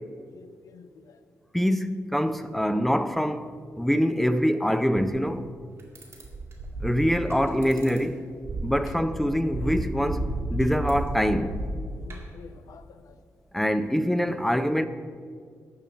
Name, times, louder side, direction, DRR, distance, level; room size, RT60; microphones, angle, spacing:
voice 1, 0.3-1.2 8.9-9.0 11.9-13.2, left 6 dB, 85° left, 0.7 m, -48 dB
voice 2, 1.5-5.5 6.8-8.2 8.6-10.3 10.5-11.5 13.5-14.9, equal, 5° left, 0.5 m, -24 dB
sound 1, 5.2-5.3 5.8-8.0 8.4-12.4, right 1 dB, 45° right, 2.1 m, -32 dB
12.5 x 4.8 x 8.3 m
wide cardioid pair, 155°, 6 cm